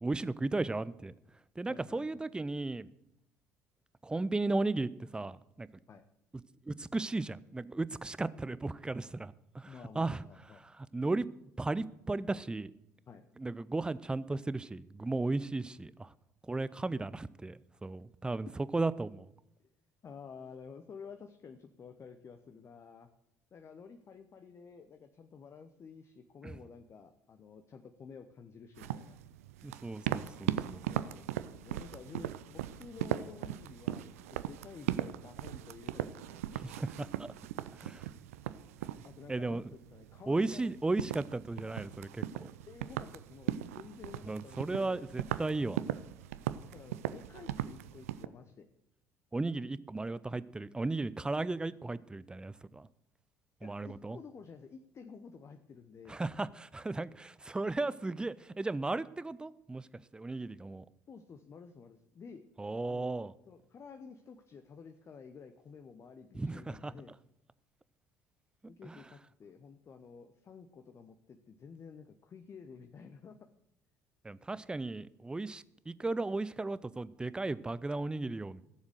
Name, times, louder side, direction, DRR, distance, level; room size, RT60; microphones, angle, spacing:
voice 1, 0.0-1.1 1.6-2.9 4.0-5.7 6.7-10.2 10.8-11.3 11.6-12.7 13.4-16.1 16.5-18.5 18.7-19.3 26.4-26.5 29.6-30.9 36.5-37.3 37.8-38.0 39.3-39.6 40.3-42.5 44.2-45.8 49.3-52.9 53.6-54.2 56.1-59.9 60.1-60.8 62.6-63.3 66.3-66.9 74.2-78.6, right 2 dB, 10° right, 18 dB, 0.5 m, -35 dB
voice 2, 1.7-2.2 5.9-6.0 9.7-10.6 13.1-13.3 18.5-18.6 20.0-23.1 23.5-29.2 30.9-36.7 39.0-40.7 42.7-45.0 46.7-48.7 53.6-56.2 61.1-62.4 62.8-67.1 68.7-73.4, left 5 dB, 35° left, 8 dB, 0.9 m, -51 dB
sound 1, 28.8-48.3, right 12 dB, 70° right, 0.5 m, -39 dB
15.5 x 7.3 x 6.4 m, 0.84 s
figure-of-eight pair, 55°, 8 cm